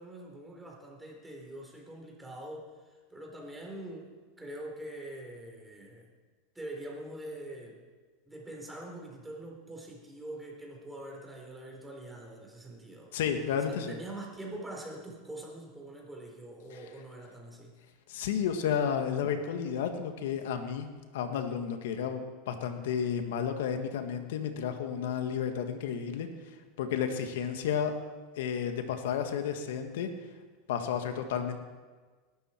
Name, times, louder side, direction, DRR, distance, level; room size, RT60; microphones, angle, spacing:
voice 1, 0.0-6.1 6.5-7.8 8.3-13.2 13.6-17.7, right 1 dB, 5° right, -1 dB, 4.0 m, -44 dB
voice 2, 13.1-14.0 16.7-16.8 18.1-20.9 21.1-26.3 26.8-28.0 28.4-30.1 30.7-31.6, left 7 dB, 80° left, 6 dB, 1.6 m, -32 dB
19.0 x 12.0 x 4.5 m, 1.4 s
supercardioid pair, 125°, 0 cm